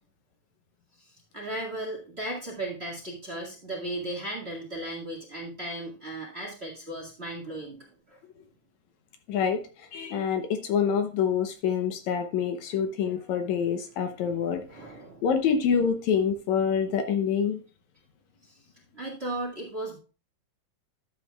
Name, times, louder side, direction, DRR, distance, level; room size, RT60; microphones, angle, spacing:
voice 1, 1.3-7.8 8.1-8.2 13.1-13.5 14.1-15.2 18.4-18.5 18.9-20.0, right 1 dB, 25° right, -1 dB, 1.8 m, -36 dB
voice 2, 9.3-9.6 9.9-14.6 15.2-17.6, left 7 dB, 75° left, 6 dB, 2.2 m, -26 dB
12.0 x 7.6 x 2.4 m, 0.35 s
omnidirectional pair, 3.4 m